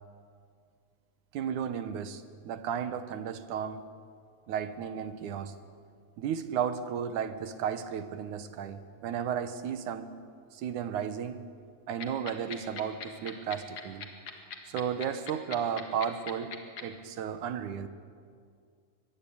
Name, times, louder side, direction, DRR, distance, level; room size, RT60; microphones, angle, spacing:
voice 1, 1.3-3.8 4.5-5.5 6.2-10.1 10.5-11.4 11.9-14.1 14.7-16.6 16.8-17.9, right 8 dB, 70° right, 10 dB, 2.5 m, -34 dB
sound 1, 12.0-16.8, left 7 dB, 50° left, 2.7 m, -39 dB
24.0 x 20.5 x 8.7 m, 2.1 s
omnidirectional pair, 3.8 m